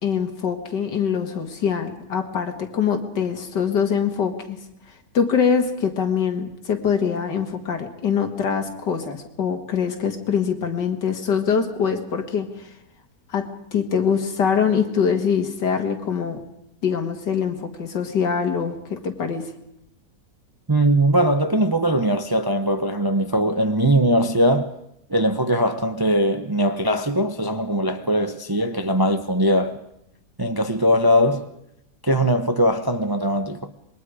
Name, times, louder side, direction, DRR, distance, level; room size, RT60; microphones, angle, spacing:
voice 1, 0.0-4.6 5.1-12.5 13.3-16.4 16.8-19.4, left 7 dB, 85° left, 2.5 m, -23 dB
voice 2, 20.7-24.7 25.1-29.8 30.4-31.5 32.0-33.7, equal, 25° right, 0.5 m, -20 dB
26.5 x 21.5 x 4.9 m
omnidirectional pair, 1.8 m